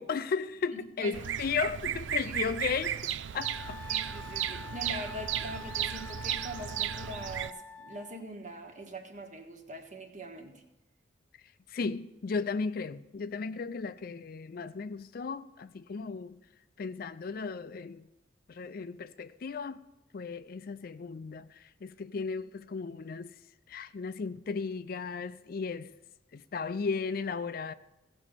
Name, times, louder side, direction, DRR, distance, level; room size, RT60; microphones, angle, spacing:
voice 1, 0.0-3.8 11.7-16.4 16.8-18.1 18.5-19.8 20.1-23.3 23.7-25.9 26.3-27.7, left 5 dB, 50° left, 0.4 m, -35 dB
Bird vocalization bird call bird song, 1.1-7.5, right 10 dB, 75° right, 0.4 m, -35 dB
Wind instrument woodwind instrument, 3.3-8.2, left 5 dB, 10° left, 0.6 m, -46 dB
voice 2, 3.9-10.5, right 1 dB, 40° right, 1.4 m, -42 dB
16.0 x 6.2 x 6.6 m
head